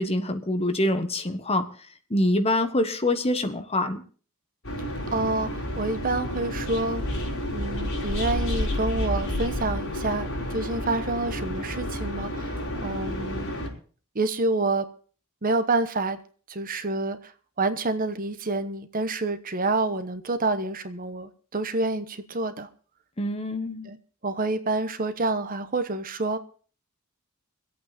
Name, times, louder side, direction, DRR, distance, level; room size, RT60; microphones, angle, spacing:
voice 1, 0.0-1.7 2.1-4.0 23.2-23.9, left 1 dB, 30° left, 8 dB, 1.3 m, -25 dB
sound 1, 4.6-13.7, left 1 dB, 65° left, 5.2 m, -30 dB
voice 2, 5.1-7.0 7.5-13.5 14.1-14.9 15.4-16.2 16.5-17.3 17.6-22.7 23.8-24.0 24.2-26.4, right 2 dB, 40° right, 10 dB, 1.1 m, -28 dB
25.0 x 8.7 x 4.3 m, 0.41 s
head